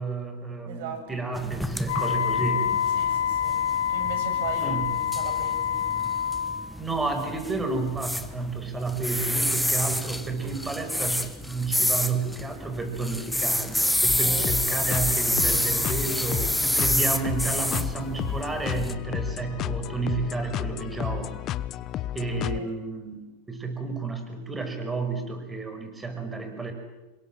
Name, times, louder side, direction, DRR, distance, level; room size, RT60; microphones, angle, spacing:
voice 1, 0.0-2.7 4.6-4.9 6.8-21.3 22.1-26.7, right 4 dB, 15° right, 6 dB, 6.3 m, -31 dB
voice 2, 0.7-1.6 2.9-3.6 3.9-5.8 14.0-14.5 22.5-22.7, right 7 dB, 65° right, 6 dB, 7.7 m, -39 dB
sound 1, 1.4-18.9, left 1 dB, ahead, 1.6 m, -29 dB
Wind instrument woodwind instrument, 1.9-6.7, left 9 dB, 75° left, 4.1 m, -26 dB
sound 2, 14.1-22.6, left 13 dB, 40° left, 0.9 m, -32 dB
27.0 x 22.0 x 7.8 m, 1.1 s
hypercardioid pair, 105°, 0 cm